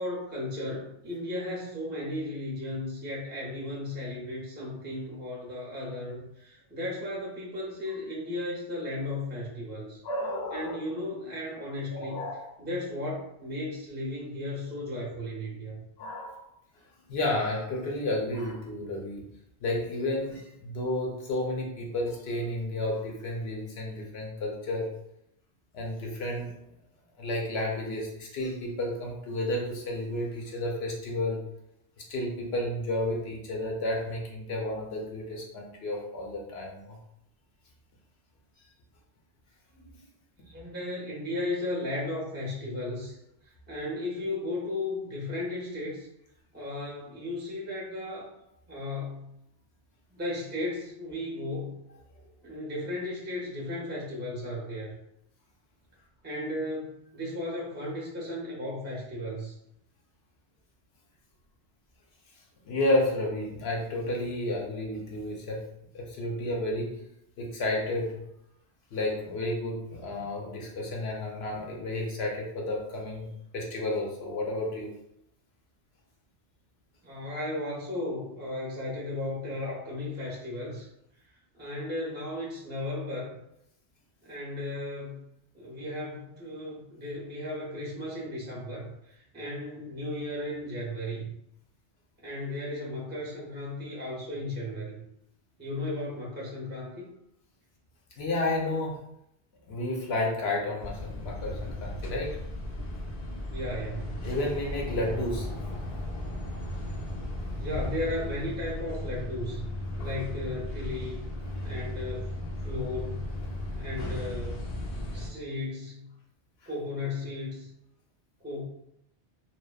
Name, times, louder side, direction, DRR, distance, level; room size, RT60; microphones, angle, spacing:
voice 1, 0.0-10.0 10.5-12.3 12.6-15.8 39.8-39.9 40.4-43.2 43.4-46.1 46.5-48.3 48.7-49.3 50.1-51.7 52.4-54.9 56.2-59.5 77.0-80.9 81.6-83.4 84.2-85.3 85.5-91.3 92.2-95.0 95.6-97.1 103.5-104.2 107.6-109.6 110.0-111.2 111.6-112.3 112.6-113.2 113.7-114.8 115.1-116.1 116.7-117.7 118.4-118.6, left 1 dB, 15° right, -4 dB, 0.5 m, -35 dB
voice 2, 10.0-10.8 11.9-12.5 16.0-16.4 17.1-19.2 19.6-24.9 25.7-26.5 27.2-31.5 32.0-37.0 62.7-65.7 65.9-66.9 67.4-68.2 68.9-73.3 73.5-74.9 98.2-99.0 99.7-102.5 104.2-105.5, left 1 dB, 70° left, -1 dB, 0.9 m, -31 dB
sound 1, 100.8-115.3, left 1 dB, 50° left, 0.5 m, -36 dB
2.7 x 2.1 x 2.3 m, 0.76 s
omnidirectional pair, 1.1 m